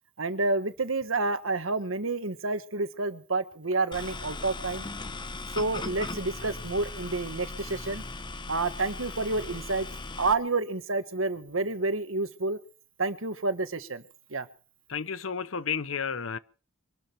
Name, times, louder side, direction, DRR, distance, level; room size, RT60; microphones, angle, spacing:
voice 1, 0.2-4.8 5.5-8.0 8.5-9.9 10.2-12.6 13.0-14.0 14.3-14.5, right 3 dB, 80° right, 1.5 m, -29 dB
sound 1, 3.9-10.3, left 3 dB, 25° left, 0.9 m, -38 dB
voice 2, 14.9-16.4, left 6 dB, 75° left, 0.8 m, -32 dB
24.0 x 12.5 x 4.5 m
head